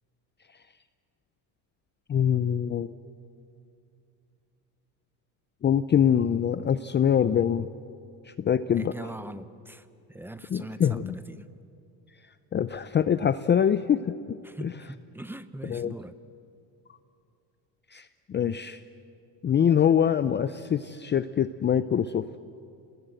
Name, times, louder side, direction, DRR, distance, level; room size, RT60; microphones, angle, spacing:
voice 1, 2.1-2.9 5.6-7.7 8.3-8.9 10.5-11.1 12.5-14.0 14.3-14.7 15.6-15.9 17.9-18.8 19.4-22.2, left 8 dB, 25° left, 12 dB, 0.5 m, -24 dB
voice 2, 8.7-11.4 14.4-16.2, right 1 dB, 5° right, 12 dB, 0.9 m, -41 dB
27.0 x 21.0 x 7.9 m, 2.6 s
supercardioid pair, 110°, 44 cm